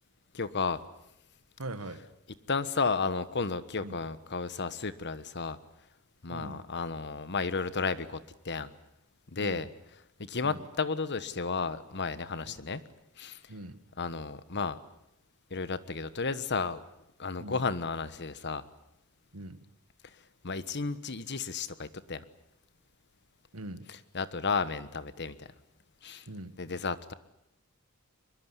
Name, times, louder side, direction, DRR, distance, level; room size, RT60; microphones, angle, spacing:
voice 1, 0.3-0.8 2.5-5.6 6.2-8.2 8.4-8.7 9.3-9.7 10.2-12.8 13.2-13.4 14.0-14.8 15.5-16.8 17.2-18.6 20.4-22.2 24.1-25.5 26.0-26.3 26.6-27.1, left 4 dB, 55° left, 14 dB, 1.3 m, -33 dB
voice 2, 1.6-2.0 3.8-3.9 6.3-6.6 9.4-9.6 10.4-10.6 12.5-12.6 13.5-13.8 17.4-17.6 19.3-19.6 23.5-23.9 26.3-26.6, right 1 dB, 80° right, 11 dB, 1.9 m, -41 dB
24.0 x 21.5 x 9.9 m, 0.83 s
head